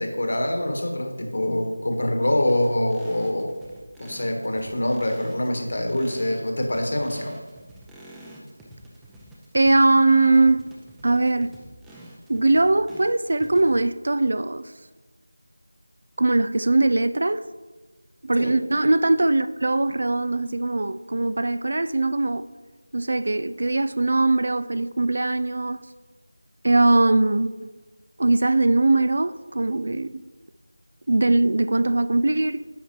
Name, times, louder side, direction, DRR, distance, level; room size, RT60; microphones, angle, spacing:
voice 1, 0.0-3.5 4.0-7.3 18.4-18.5, left 1 dB, 50° left, 1.4 m, -25 dB
sound 1, 2.4-13.8, right 1 dB, 5° right, 0.6 m, -46 dB
voice 2, 9.5-10.7 11.0-11.5 12.3-14.7 16.2-17.5 18.2-22.4 22.9-25.8 26.6-27.7 28.2-30.2 31.1-32.7, right 2 dB, 50° right, 0.3 m, -21 dB
10.0 x 7.0 x 3.1 m
figure-of-eight pair, 165°, 0 cm